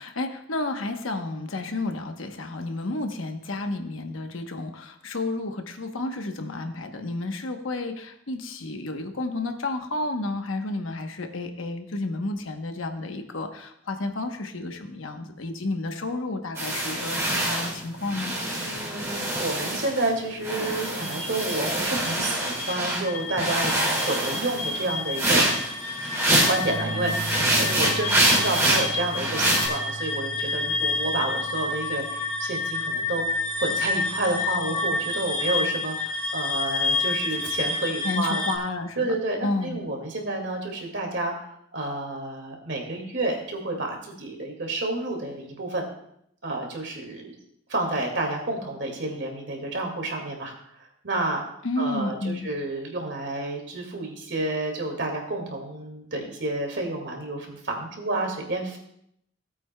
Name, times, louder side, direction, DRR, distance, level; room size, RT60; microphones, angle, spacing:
voice 1, 0.0-18.3 38.0-39.1 39.4-39.8 51.6-52.5, left 2 dB, 80° left, 5 dB, 1.0 m, -31 dB
sound 1, 16.5-20.1 20.4-23.0 23.4-26.7 27.0-29.7, right 1 dB, 15° right, 2.2 m, -25 dB
voice 2, 18.6-25.5 26.5-27.3 27.6-33.2 33.6-38.4 39.0-45.8 46.4-47.3 47.7-50.5 50.8-51.4 51.8-58.8, right 2 dB, 60° right, 2 dB, 2.1 m, -30 dB
sound 2, 21.0-38.6, left 3 dB, 15° left, 1.5 m, -30 dB
sound 3, 26.6-35.7 37.1-37.7, right 3 dB, 30° right, 2.5 m, -40 dB
17.0 x 8.4 x 2.2 m, 0.72 s
head